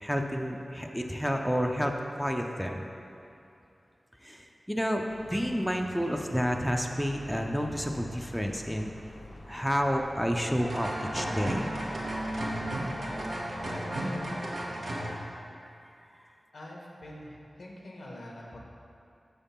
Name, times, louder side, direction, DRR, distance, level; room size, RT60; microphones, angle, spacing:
voice 1, 0.0-2.9 4.2-5.0 5.3-8.9 9.5-11.7 13.7-13.8, equal, ahead, 2 dB, 0.5 m, -30 dB
sound 1, 5.1-14.5, left 1 dB, 55° left, 0.6 m, -48 dB
World melody, 10.6-15.1, right 1 dB, 75° right, 1.0 m, -33 dB
voice 2, 16.5-18.6, left 1 dB, 85° left, -3 dB, 1.1 m, -45 dB
6.5 x 3.5 x 5.6 m, 2.7 s
cardioid pair, 50°, 0 cm